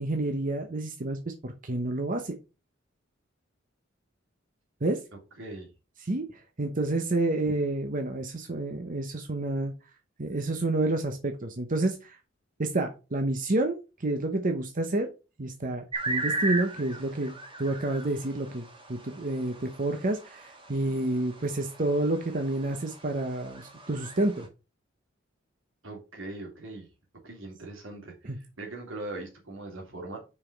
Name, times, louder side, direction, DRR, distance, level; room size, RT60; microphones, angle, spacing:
voice 1, 0.0-2.4 4.8-5.0 6.0-9.7 10.2-12.2 12.6-15.1 15.4-24.5 28.2-28.4, right 2 dB, 45° right, 0.9 m, -29 dB
voice 2, 5.4-5.7 25.8-26.9 27.2-30.3, right 2 dB, 85° right, 2.9 m, -40 dB
sound 1, 15.9-24.5, right 2 dB, 25° right, 1.6 m, -37 dB
5.6 x 4.9 x 5.2 m
head